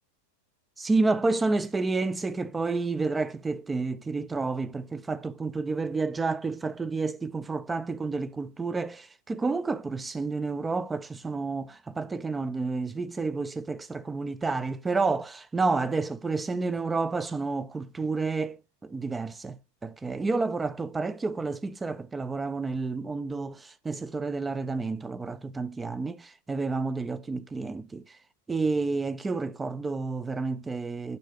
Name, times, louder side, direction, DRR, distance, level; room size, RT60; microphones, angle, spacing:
voice 1, 0.8-18.6 18.8-28.2 28.5-31.2, right 3 dB, 10° right, 0.4 m, -30 dB
10.5 x 5.4 x 3.4 m
figure-of-eight pair, 90°, 0 cm